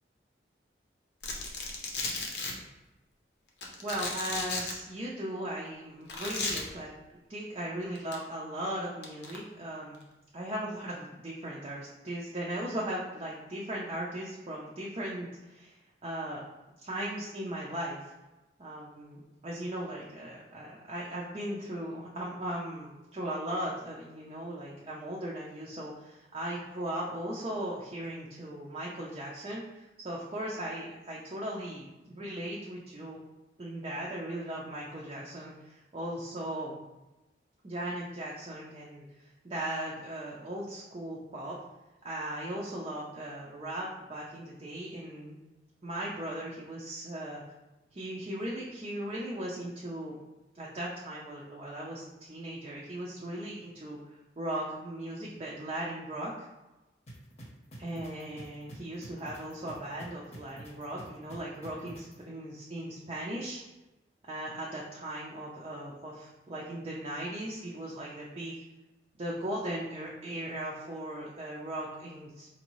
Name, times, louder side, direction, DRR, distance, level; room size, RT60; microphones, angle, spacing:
Domestic sounds home sounds, 1.2-2.5 3.6-4.7 6.1-6.6 8.0-8.2 9.0-9.4, left 3 dB, 70° left, 0.7 m, -34 dB
voice 1, 3.8-6.9 7.3-10.0 10.3-15.8 16.0-16.4 16.8-18.1 18.6-31.9 32.1-33.2 33.6-36.8 37.6-41.6 42.0-45.4 45.8-47.4 47.9-50.2 50.5-54.0 54.4-56.5 57.8-63.6 64.3-68.6 69.2-72.5, right 1 dB, 30° right, -4 dB, 0.4 m, -38 dB
sound 1, 57.1-62.1, right 1 dB, 35° left, 0.8 m, -47 dB
4.5 x 2.6 x 3.0 m, 1.0 s
head